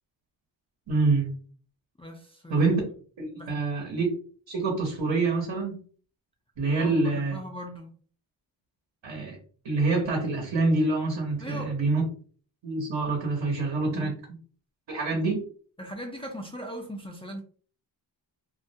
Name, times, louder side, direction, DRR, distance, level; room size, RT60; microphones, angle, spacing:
voice 1, 0.9-1.3 2.5-2.8 3.2-4.1 4.5-5.8 6.6-7.4 9.0-9.4 9.6-12.0 12.6-14.1 14.9-15.4, right 3 dB, 65° right, 0.9 m, -26 dB
voice 2, 2.0-2.6 3.4-3.6 6.7-7.9 11.4-11.8 13.9-14.1 15.1-15.3 15.8-17.4, equal, 15° left, 0.4 m, -39 dB
2.4 x 2.0 x 2.7 m
cardioid pair, 75°, 46 cm